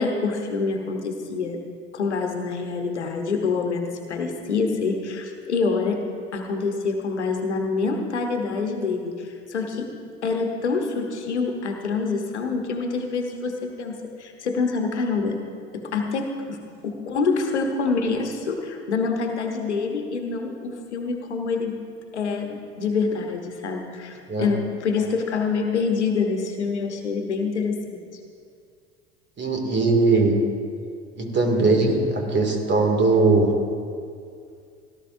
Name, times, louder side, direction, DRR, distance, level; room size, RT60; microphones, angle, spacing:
voice 1, 0.0-1.6 1.9-6.0 6.3-9.9 10.2-15.4 15.7-21.7 22.1-28.0, left 4 dB, 85° left, 4 dB, 1.1 m, -26 dB
voice 2, 29.4-30.5 31.2-33.6, right 3 dB, 35° right, 2 dB, 2.4 m, -20 dB
17.5 x 11.5 x 2.7 m, 2.3 s
hypercardioid pair, 65°, 33 cm